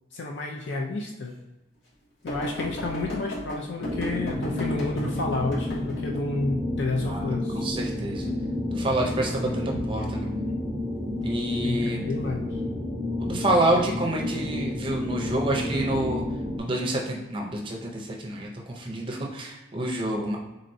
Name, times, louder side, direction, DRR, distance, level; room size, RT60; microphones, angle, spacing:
voice 1, 0.1-1.3 2.2-7.7 11.6-12.6, left 2 dB, 65° left, 1 dB, 0.4 m, -30 dB
sound 1, 2.3-6.2 9.7-10.1 11.2-11.3, equal, 85° left, 1.3 m, -35 dB
sound 2, 3.8-16.6, left 1 dB, 30° left, 1.2 m, -31 dB
voice 2, 7.1-8.3 8.7-10.3 11.2-12.1 13.2-16.2 16.6-20.4, right 1 dB, 25° right, 0 dB, 0.5 m, -28 dB
4.3 x 3.8 x 2.6 m, 1.0 s
head